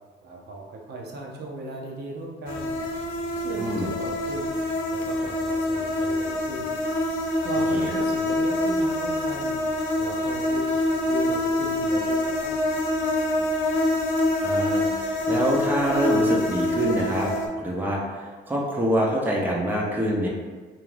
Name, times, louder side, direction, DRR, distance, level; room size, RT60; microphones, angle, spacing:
voice 1, 0.2-2.7 3.4-4.5 4.9-6.7 7.4-9.6 10.0-10.6 11.1-12.5, right 2 dB, 55° right, -1 dB, 0.5 m, -36 dB
sound 1, 2.5-17.5, left 1 dB, 85° left, 0.5 m, -25 dB
voice 2, 3.6-3.9 7.7-7.9 14.4-17.3 17.6-20.3, right 1 dB, 10° right, -3 dB, 0.5 m, -25 dB
2.4 x 2.3 x 3.2 m, 1.5 s
cardioid pair, 90°, 20 cm